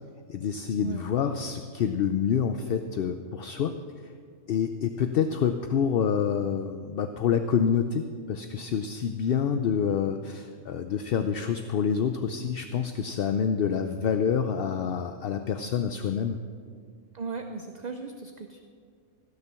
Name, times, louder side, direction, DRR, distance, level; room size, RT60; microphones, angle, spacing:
voice 1, 0.3-3.8 4.5-16.4, left 7 dB, 60° left, 8 dB, 0.6 m, -27 dB
voice 2, 17.1-18.6, right 4 dB, 45° right, 6 dB, 0.6 m, -37 dB
16.5 x 6.7 x 6.9 m, 2.2 s
omnidirectional pair, 1.4 m